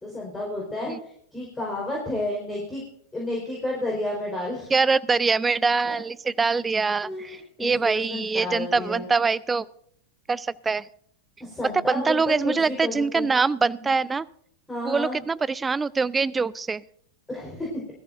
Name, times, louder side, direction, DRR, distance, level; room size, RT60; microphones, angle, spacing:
voice 1, 0.0-2.8 3.1-4.7 5.9-6.0 7.0-9.0 11.4-13.3 13.8-13.9 14.7-15.2 17.3-17.8, left 1 dB, 10° left, -3 dB, 4.4 m, -31 dB
voice 2, 4.7-9.7 10.3-10.9 11.9-14.3 14.8-16.8, right 4 dB, 15° right, 22 dB, 0.4 m, -24 dB
20.0 x 14.0 x 2.6 m, 0.64 s
figure-of-eight pair, 90°, 0 cm